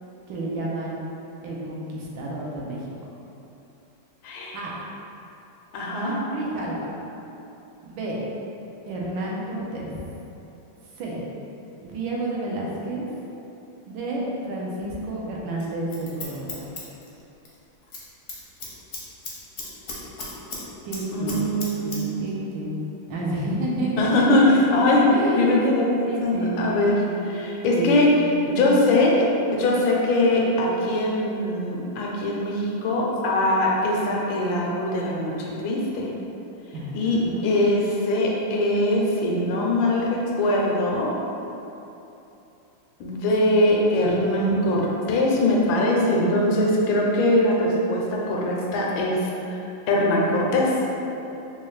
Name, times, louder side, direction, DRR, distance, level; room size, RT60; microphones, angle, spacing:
voice 1, 0.3-1.0 1.4-2.8 4.5-4.9 5.9-6.9 7.8-8.2 8.9-10.0 11.0-11.3 11.8-13.1 13.9-16.7 20.8-24.3 25.1-25.5 26.0-27.2 27.7-28.1 36.7-37.5, right 1 dB, 80° right, -4 dB, 1.4 m, -30 dB
voice 2, 4.2-4.6 5.7-6.2 21.1-22.4 24.0-25.1 25.4-27.0 27.3-28.1 28.5-29.2 29.5-36.1 36.9-41.1 43.0-49.3 49.9-50.7, left 1 dB, 85° left, -3 dB, 1.4 m, -22 dB
Scissors, 15.6-17.6 17.8-18.0 18.3-20.6 20.9-22.0 22.3-22.4, left 3 dB, 60° left, 0.7 m, -35 dB
4.2 x 2.3 x 3.1 m, 2.9 s
omnidirectional pair, 2.1 m